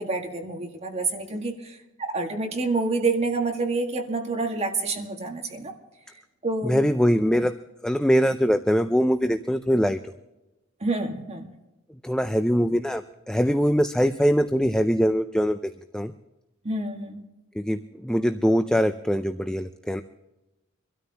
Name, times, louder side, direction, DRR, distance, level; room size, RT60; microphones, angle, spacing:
voice 1, 0.0-5.7 6.4-6.8 10.8-11.4 16.6-17.2, right 3 dB, 30° right, 2 dB, 1.6 m, -28 dB
voice 2, 6.6-7.5 7.8-10.0 12.0-13.0 13.3-16.1 17.6-20.0, equal, 5° left, 8 dB, 0.4 m, -22 dB
25.0 x 13.0 x 2.8 m, 1.0 s
head